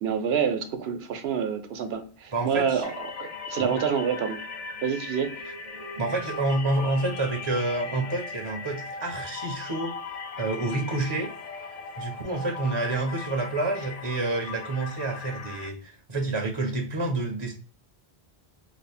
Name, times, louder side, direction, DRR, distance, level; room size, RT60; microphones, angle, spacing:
voice 1, 0.0-4.4 4.8-5.3, right 7 dB, 75° right, 7 dB, 0.9 m, -27 dB
voice 2, 2.3-2.8 3.6-3.7 6.0-9.9 10.4-11.3 12.0-17.5, right 2 dB, 35° right, 1 dB, 0.5 m, -28 dB
sound 1, 2.8-15.7, left 4 dB, 55° left, 0.4 m, -38 dB
3.2 x 2.0 x 4.0 m, 0.41 s
omnidirectional pair, 1.1 m